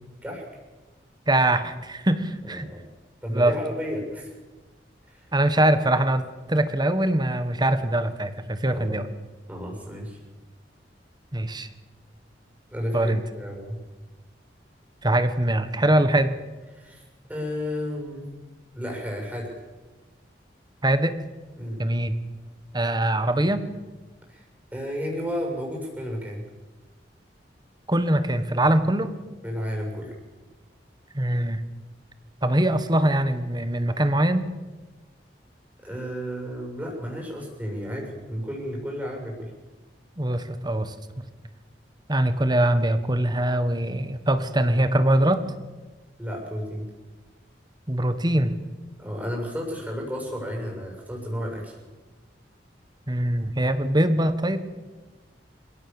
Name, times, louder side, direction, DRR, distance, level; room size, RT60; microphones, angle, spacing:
voice 1, 1.3-2.7 3.3-3.5 5.3-6.2 6.5-9.1 11.3-11.7 12.9-13.2 15.0-16.3 20.8-21.2 21.8-22.2 22.7-23.6 27.9-29.1 31.1-31.6 32.4-34.5 40.2-41.2 42.1-45.4 47.9-48.5 53.1-54.6, right 1 dB, 25° right, 11 dB, 1.6 m, -22 dB
voice 2, 2.4-2.8 3.2-4.3 5.1-5.3 8.7-9.0 9.5-10.2 12.7-13.8 16.7-17.0 17.3-18.3 18.7-19.5 21.5-21.8 24.3-24.4 24.7-26.4 29.4-30.1 35.8-39.5 46.2-46.9 49.0-51.7, equal, 10° right, -1 dB, 7.3 m, -32 dB
28.0 x 17.0 x 7.2 m, 1.2 s
head